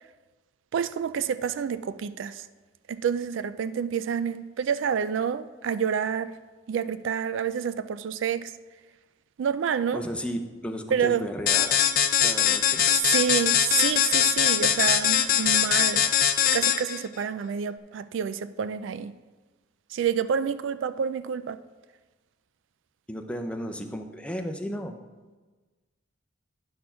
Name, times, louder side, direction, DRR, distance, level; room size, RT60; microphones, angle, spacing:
voice 1, 0.7-2.4 2.9-6.3 6.7-8.5 9.4-10.0 10.9-11.3 13.1-19.1 19.9-21.6, right 7 dB, 80° right, 0.3 m, -28 dB
voice 2, 9.9-11.8 12.2-12.8 23.1-24.9, equal, 5° left, 0.6 m, -34 dB
sound 1, 11.5-17.0, left 9 dB, 50° left, 0.5 m, -22 dB
10.0 x 4.3 x 5.6 m
head